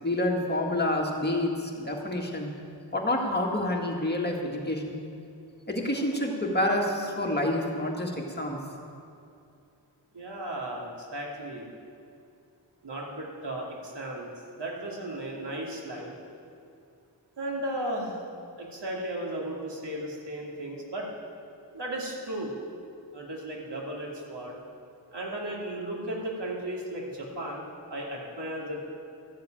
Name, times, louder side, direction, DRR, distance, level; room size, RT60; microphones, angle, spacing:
voice 1, 0.0-2.5 2.9-5.0 5.7-8.6, left 1 dB, 25° left, 0 dB, 1.9 m, -28 dB
voice 2, 10.1-11.7 12.8-14.3 14.6-16.1 17.4-18.2 18.6-21.1 21.7-22.5 23.1-24.6 25.1-28.8, right 1 dB, 70° right, -2 dB, 2.6 m, -35 dB
13.5 x 7.5 x 9.0 m, 2.5 s
wide cardioid pair, 65°, 43 cm